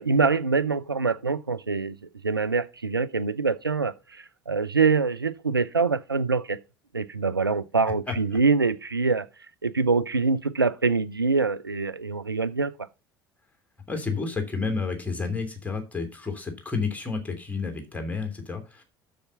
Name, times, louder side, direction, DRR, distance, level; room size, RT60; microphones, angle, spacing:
voice 1, 0.0-2.0 2.2-6.6 6.9-9.3 9.6-12.8, right 4 dB, 85° right, 0.4 m, -24 dB
voice 2, 13.9-18.8, left 4 dB, 10° left, 2.9 m, -30 dB
7.1 x 6.5 x 5.7 m
figure-of-eight pair, 65°, 12 cm